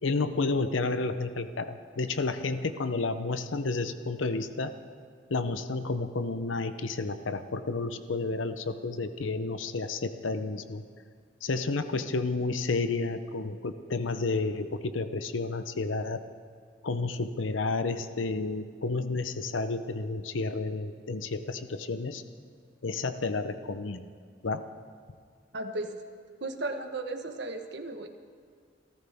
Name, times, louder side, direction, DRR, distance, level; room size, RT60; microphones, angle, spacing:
voice 1, 0.0-4.7 5.3-10.8 11.4-16.2 16.8-22.2 22.8-24.1 24.4-24.6, left 3 dB, 85° left, 10 dB, 0.7 m, -31 dB
voice 2, 25.5-25.9 26.4-28.1, right 2 dB, 60° right, 5 dB, 1.3 m, -35 dB
27.0 x 14.0 x 3.6 m, 2.1 s
head